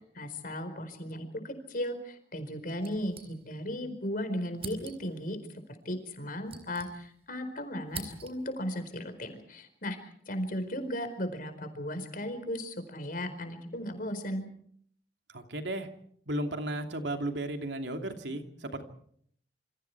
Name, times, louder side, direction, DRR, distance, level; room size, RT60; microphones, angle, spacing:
voice 1, 0.2-14.4, equal, 50° left, 8 dB, 4.5 m, -36 dB
sound 1, 2.8-3.8 4.1-4.2 4.5-5.2 6.1-7.4 7.6-8.6, right 5 dB, 35° right, 4.3 m, -46 dB
voice 2, 15.3-15.9 16.3-18.8, right 1 dB, 80° right, 5 dB, 2.7 m, -34 dB
28.0 x 26.5 x 4.8 m, 0.65 s
head